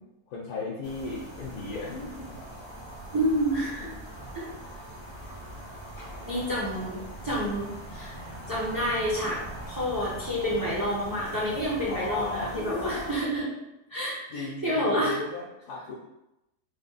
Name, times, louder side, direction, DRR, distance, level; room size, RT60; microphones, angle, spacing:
voice 1, 0.3-2.3 3.8-3.9 11.9-13.1 14.3-16.0, left 2 dB, 75° left, -5 dB, 1.2 m, -35 dB
sound 1, 0.8-13.2, right 1 dB, 45° left, 0.3 m, -42 dB
voice 2, 3.1-3.9 4.3-4.5 6.2-8.2 8.5-9.4 9.7-13.5 13.9-15.2, equal, 20° right, -7 dB, 0.6 m, -29 dB
3.6 x 2.2 x 3.9 m, 0.92 s
omnidirectional pair, 1.6 m